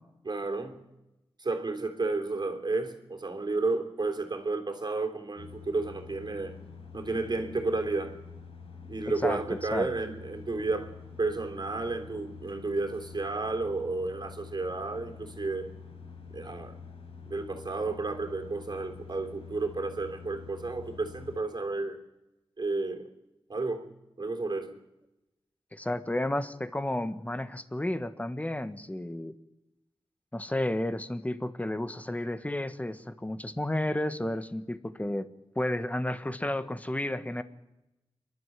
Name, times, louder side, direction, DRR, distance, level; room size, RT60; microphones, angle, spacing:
voice 1, 0.2-0.9 1.4-6.6 6.9-8.2 8.9-15.7 16.3-16.8 17.2-22.0 22.6-23.1 23.5-24.8, right 3 dB, 50° right, 3.4 m, -32 dB
sound 1, 5.4-21.4, left 5 dB, 75° left, 4.8 m, -47 dB
voice 2, 25.7-29.3 30.3-35.3 35.5-37.4, left 1 dB, 15° left, 1.4 m, -32 dB
28.0 x 12.0 x 9.2 m
wide cardioid pair, 70°, 10 cm